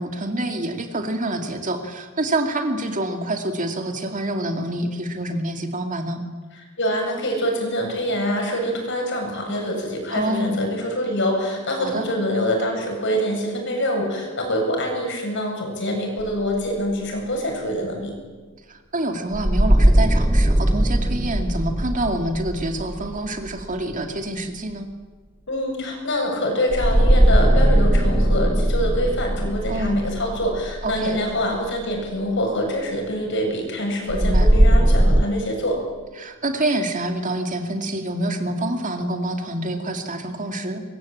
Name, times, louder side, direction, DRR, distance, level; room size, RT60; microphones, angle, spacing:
voice 1, 0.0-6.2 10.1-10.6 11.8-12.1 18.7-24.9 29.7-30.0 30.8-31.2 34.1-34.5 36.2-40.8, right 1 dB, 40° right, 5 dB, 2.5 m, -27 dB
voice 2, 6.8-18.1 25.5-35.8, equal, 60° left, 2 dB, 7.9 m, -25 dB
sound 1, 16.2-16.3 19.3-24.1 26.7-31.8 34.1-35.2, right 1 dB, 10° right, 0.7 m, -19 dB
24.5 x 21.5 x 8.8 m, 1.3 s
head